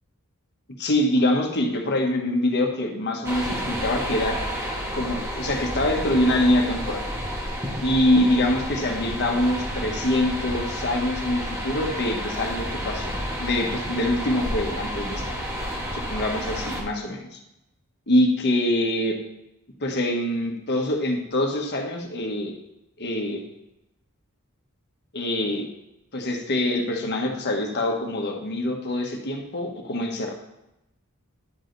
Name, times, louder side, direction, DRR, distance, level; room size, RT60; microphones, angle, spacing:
voice 1, 0.8-4.4 4.9-7.0 7.8-13.1 13.4-15.2 15.9-17.4 18.1-19.2 19.8-22.5 23.0-23.4 25.1-25.7 26.1-30.3, left 1 dB, 50° left, 2 dB, 1.4 m, -24 dB
sound 1, 3.2-16.8, equal, 15° right, 1.3 m, -30 dB
11.0 x 5.0 x 4.0 m, 0.89 s
head